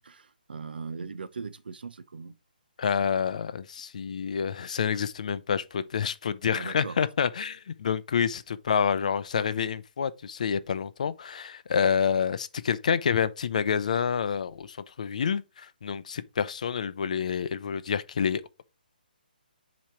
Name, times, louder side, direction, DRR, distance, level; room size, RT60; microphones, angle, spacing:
voice 1, 0.0-2.3 6.5-7.0, right 5 dB, 75° right, 0.8 m, -39 dB
voice 2, 2.8-18.6, left 7 dB, 50° left, 0.5 m, -28 dB
7.4 x 3.1 x 4.7 m
hypercardioid pair, 165°, 5 cm